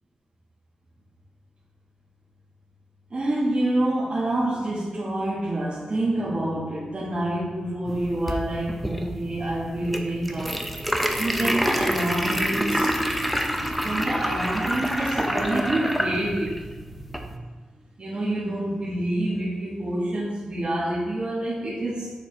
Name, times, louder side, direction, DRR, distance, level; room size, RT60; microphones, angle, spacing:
voice 1, 3.1-10.6 11.1-13.0 13.8-16.6 18.0-22.1, right 1 dB, 45° right, -6 dB, 1.2 m, -27 dB
sound 1, 7.9-17.4, equal, ahead, 0.6 m, -27 dB
7.0 x 3.1 x 4.7 m, 1.3 s
cardioid pair, 75°, 2 cm